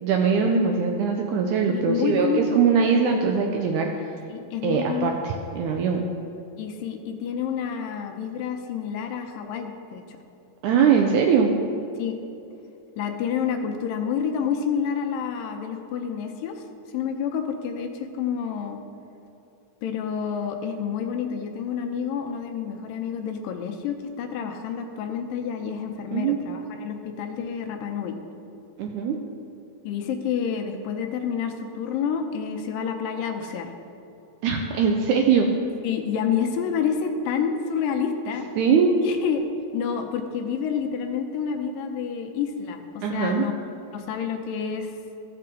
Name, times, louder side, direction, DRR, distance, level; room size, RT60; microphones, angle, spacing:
voice 1, 0.0-3.9 4.6-6.1 10.6-11.5 26.1-26.4 28.8-29.2 34.4-35.5 38.6-39.0 43.0-43.5, right 6 dB, 80° right, 2 dB, 1.8 m, -21 dB
voice 2, 1.7-2.6 4.3-5.1 6.6-10.2 12.0-12.2 13.0-16.6 16.9-18.8 19.8-28.1 29.8-33.7 35.8-38.5 39.0-39.4 39.7-43.5 43.9-44.9, left 7 dB, 85° left, 4 dB, 2.3 m, -29 dB
15.0 x 5.8 x 3.7 m, 2.7 s
omnidirectional pair, 4.0 m